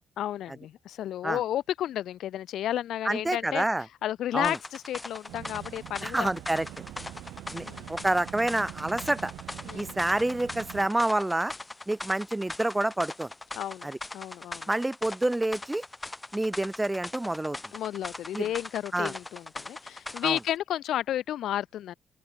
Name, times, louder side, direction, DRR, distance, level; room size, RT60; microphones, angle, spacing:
voice 1, 0.2-3.6 4.0-6.3 7.5-8.1 9.6-9.9 13.6-14.7 17.7-22.0, left 12 dB, 75° left, 0.9 m, -32 dB
voice 2, 3.0-3.8 4.3-4.6 6.0-6.8 7.5-9.3 9.7-11.5 11.9-13.3 13.8-14.0 14.7-15.8 16.3-17.6 18.3-18.5 18.9-19.1 20.2-20.4, right 1 dB, 15° right, 0.4 m, -28 dB
sound 1, 4.4-20.6, left 2 dB, 20° left, 1.1 m, -41 dB
sound 2, 5.3-10.9, right 14 dB, 80° right, 0.6 m, -44 dB
supercardioid pair, 60°, 0 cm